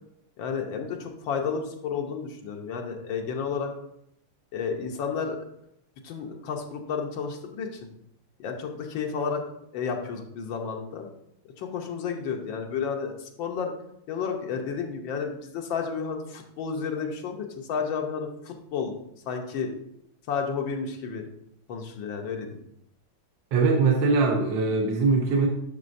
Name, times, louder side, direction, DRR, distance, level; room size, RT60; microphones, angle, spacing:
voice 1, 0.4-3.7 4.5-5.4 6.0-7.9 8.4-9.4 9.7-11.1 11.6-13.7 14.1-18.9 19.3-19.7 20.3-21.2 21.7-22.6, left 6 dB, 75° left, 3 dB, 1.6 m, -31 dB
voice 2, 23.5-25.5, right 4 dB, 70° right, 2 dB, 1.5 m, -22 dB
11.0 x 6.0 x 2.6 m, 0.77 s
omnidirectional pair, 2.1 m